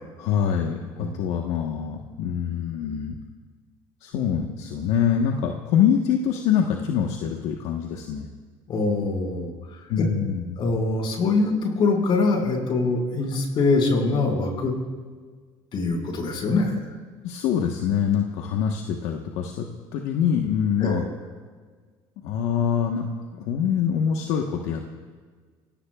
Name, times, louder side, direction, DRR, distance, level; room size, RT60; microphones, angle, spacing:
voice 1, 0.2-3.2 4.0-8.3 9.9-10.6 17.2-21.0 22.2-25.0, left 8 dB, 75° left, 2 dB, 1.3 m, -25 dB
voice 2, 8.7-10.0 10.6-14.7 15.7-16.8 20.8-21.0, left 3 dB, 50° left, 1 dB, 5.5 m, -23 dB
29.5 x 17.5 x 2.4 m, 1.5 s
cardioid pair, 105°, 11 cm